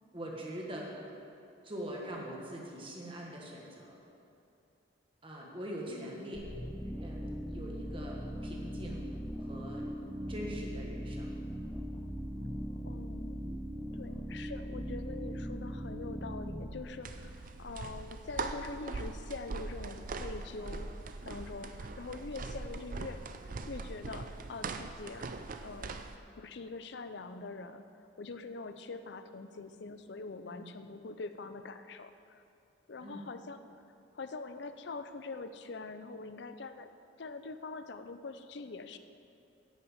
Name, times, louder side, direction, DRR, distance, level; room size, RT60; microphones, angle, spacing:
voice 1, 0.1-0.9 1.6-4.0 5.2-6.5 6.8-9.1 9.4-9.9 10.3-11.3 30.5-30.7 33.0-33.2, equal, 25° right, -2 dB, 1.5 m, -43 dB
sound 1, 6.3-18.1, equal, 5° left, 0.6 m, -40 dB
voice 2, 12.9-13.4 13.9-20.9 21.2-25.3 25.6-26.0 26.3-32.4 32.9-33.6 34.1-36.9 37.2-39.0, left 3 dB, 60° left, 10 dB, 0.5 m, -44 dB
sound 2, 17.0-26.2, right 3 dB, 45° right, 0.5 m, -41 dB
10.5 x 6.0 x 8.1 m, 2.6 s
head